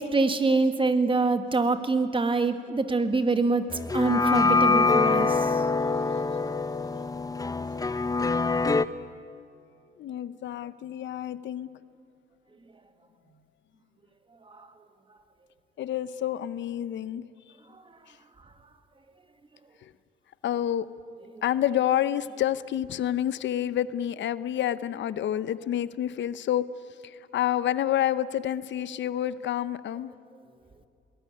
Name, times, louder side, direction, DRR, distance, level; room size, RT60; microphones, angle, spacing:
voice 1, 0.0-5.6 14.5-14.7 21.3-21.4, right 3 dB, 25° right, 9 dB, 1.7 m, -25 dB
sound 1, 3.7-8.9, left 3 dB, 20° left, 0.8 m, -24 dB
voice 2, 10.0-11.7 15.8-17.3 18.1-18.2 19.8-19.9 20.4-20.9 21.4-26.7 27.0-30.1, left 11 dB, 65° left, 15 dB, 0.7 m, -28 dB
21.0 x 19.5 x 9.8 m, 2.4 s
cardioid pair, 90°, 20 cm